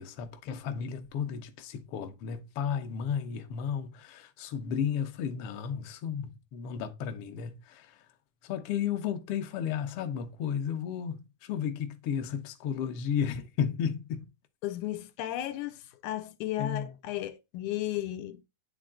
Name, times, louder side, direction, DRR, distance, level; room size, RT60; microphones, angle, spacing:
voice 1, 0.0-8.0 8.4-14.3 16.6-16.9, left 8 dB, 70° left, 1.4 m, -33 dB
voice 2, 14.6-18.4, left 14 dB, 85° left, 2.1 m, -34 dB
9.4 x 3.6 x 3.7 m
omnidirectional pair, 3.5 m